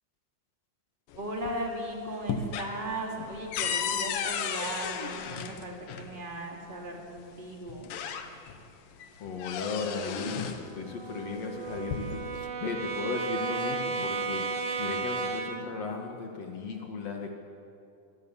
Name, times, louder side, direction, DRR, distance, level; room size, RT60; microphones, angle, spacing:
sound 1, 1.1-1.8 2.1-6.1 7.2-7.3 7.7-8.6 9.0-10.7 11.6-12.4, left 7 dB, 70° left, 2.2 m, -34 dB
voice 1, 1.1-7.9, right 1 dB, 15° right, 0 dB, 2.6 m, -37 dB
voice 2, 9.2-14.4 14.8-17.3, left 4 dB, 45° left, 2 dB, 2.4 m, -36 dB
Brass instrument, 10.2-15.8, right 4 dB, 80° right, 1.4 m, -34 dB
26.0 x 22.5 x 7.5 m, 2.6 s
omnidirectional pair, 5.7 m